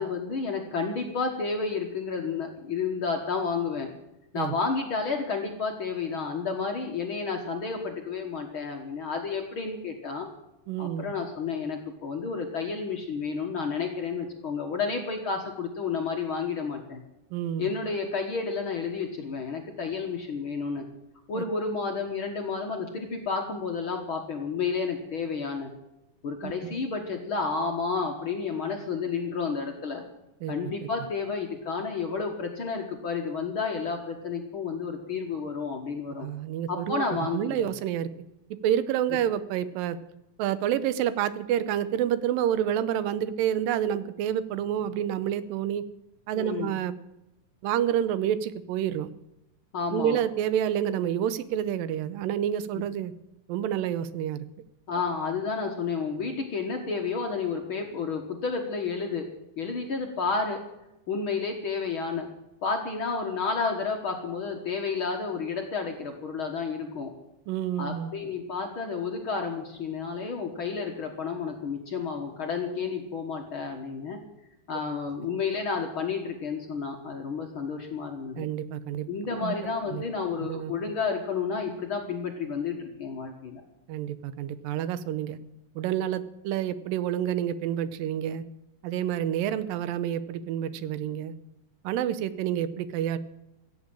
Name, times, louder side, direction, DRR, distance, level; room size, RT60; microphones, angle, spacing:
voice 1, 0.0-3.9 4.3-10.3 10.8-17.0 17.6-20.8 21.3-25.7 26.2-30.0 30.5-36.3 36.7-37.7 46.3-46.7 49.7-50.2 52.7-52.8 54.9-59.3 59.6-60.6 61.1-62.3 62.6-67.1 67.8-74.2 74.7-78.5 79.1-83.6, left 5 dB, 55° left, 2 dB, 1.6 m, -31 dB
voice 2, 10.7-11.1 17.3-17.7 21.4-21.5 26.4-26.7 30.4-30.7 36.2-38.1 38.6-40.0 40.4-45.8 46.3-46.9 47.6-49.1 49.9-53.1 53.5-54.4 67.5-68.1 78.4-79.1 79.4-80.0 80.4-80.7 83.9-85.4 85.8-88.4 88.8-91.3 91.8-93.2, right 10 dB, 85° right, 15 dB, 2.5 m, -28 dB
16.0 x 7.7 x 8.7 m, 0.92 s
omnidirectional pair, 3.9 m